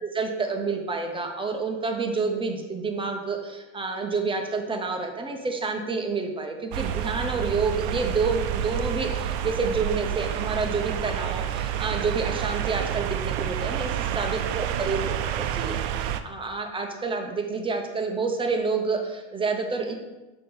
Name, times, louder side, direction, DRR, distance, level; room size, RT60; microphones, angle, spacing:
voice 1, 0.0-13.9 14.1-19.9, right 4 dB, 15° right, 3 dB, 0.7 m, -28 dB
sound 1, 6.7-16.2, right 10 dB, 65° right, 0.5 m, -29 dB
5.9 x 2.9 x 5.4 m, 1.1 s
supercardioid pair, 120°, 38 cm